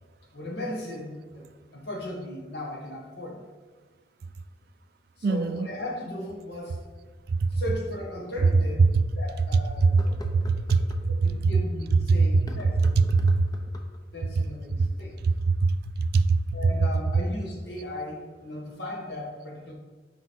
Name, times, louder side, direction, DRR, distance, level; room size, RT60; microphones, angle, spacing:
voice 1, 0.3-1.5 1.7-3.4 5.2-6.8 7.5-10.2 11.1-13.1 14.1-15.1 16.5-19.7, left 1 dB, 60° left, -1 dB, 1.5 m, -37 dB
voice 2, 5.2-5.7 7.4-7.5 8.8-9.0 9.8-10.8 11.1-11.3 12.1-12.2 13.1-13.5 15.2-16.4, right 4 dB, 55° right, 11 dB, 0.3 m, -22 dB
sound 1, 7.9-8.0 8.6-8.7 9.8-11.1 12.3-14.0, left 1 dB, 20° left, 0.5 m, -45 dB
6.0 x 5.0 x 4.5 m, 1.4 s
head